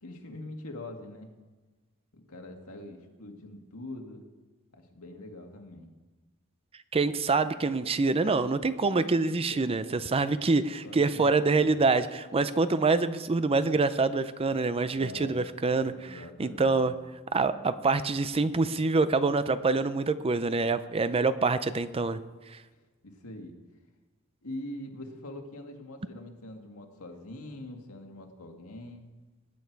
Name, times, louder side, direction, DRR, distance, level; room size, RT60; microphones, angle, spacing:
voice 1, 0.0-1.3 2.1-4.2 4.7-5.9 9.5-10.1 10.8-11.8 14.8-15.5 15.8-16.9 22.7-23.5 24.4-29.1, left 1 dB, 80° left, 3 dB, 1.9 m, -43 dB
voice 2, 6.9-16.9 17.3-22.2 22.5-22.6, right 3 dB, 25° right, 13 dB, 0.5 m, -26 dB
19.5 x 8.8 x 4.6 m, 1.2 s
head